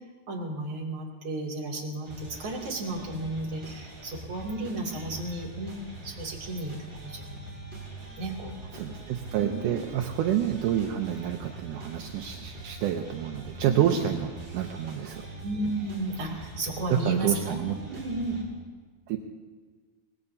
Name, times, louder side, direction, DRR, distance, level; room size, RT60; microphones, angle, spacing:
voice 1, 0.3-2.1 2.4-5.7 6.0-7.4 8.2-8.6 9.3-9.8 13.6-14.0 15.4-18.4, right 2 dB, 35° right, -3 dB, 3.0 m, -33 dB
sound 1, 2.0-18.4, right 2 dB, 10° right, 4.7 m, -43 dB
voice 2, 8.7-15.3 16.9-17.8 19.1-19.2, right 10 dB, 75° right, 3 dB, 1.9 m, -28 dB
24.5 x 19.5 x 2.8 m, 1.4 s
omnidirectional pair, 4.4 m